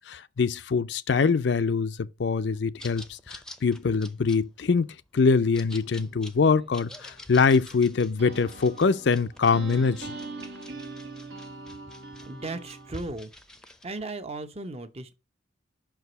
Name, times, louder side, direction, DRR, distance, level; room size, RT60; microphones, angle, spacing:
voice 1, 0.1-4.9 5.1-10.2, left 5 dB, 65° left, 0.5 m, -24 dB
sound 1, 2.8-13.9, left 1 dB, 5° left, 0.7 m, -48 dB
sound 2, 5.8-13.0, right 3 dB, 70° right, 1.3 m, -43 dB
voice 2, 12.2-13.3 13.8-15.2, right 2 dB, 35° right, 0.8 m, -36 dB
5.9 x 4.7 x 6.6 m
head